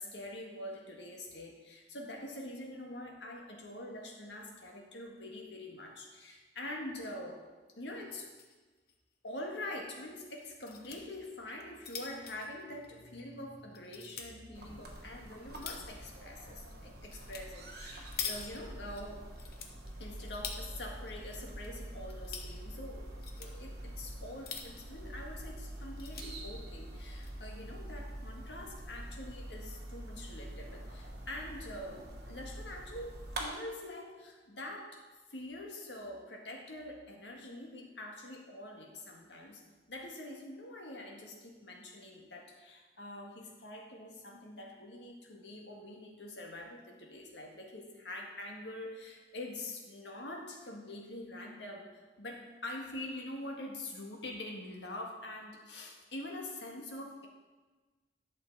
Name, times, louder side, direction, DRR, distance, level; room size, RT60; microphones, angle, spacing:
voice 1, 0.0-7.4 7.8-8.3 9.2-19.3 20.0-23.1 23.4-35.0 35.3-39.6 39.9-57.3, left 1 dB, 85° left, 0 dB, 1.8 m, -45 dB
sound 1, 8.1-8.6 8.9-9.0 9.3-9.4 10.4-11.0 11.5-13.3 13.8-14.3 14.9-16.0 17.1-17.4 17.7-19.0 19.4-20.6 21.1-21.7 22.0-22.5 23.1-23.5 24.2-25.0 25.4-25.5 25.8-26.3 27.0-27.3, left 6 dB, 60° left, 1.0 m, -44 dB
sound 2, 14.5-33.4, right 1 dB, 60° right, 1.7 m, -45 dB
11.0 x 6.5 x 4.7 m, 1.3 s
head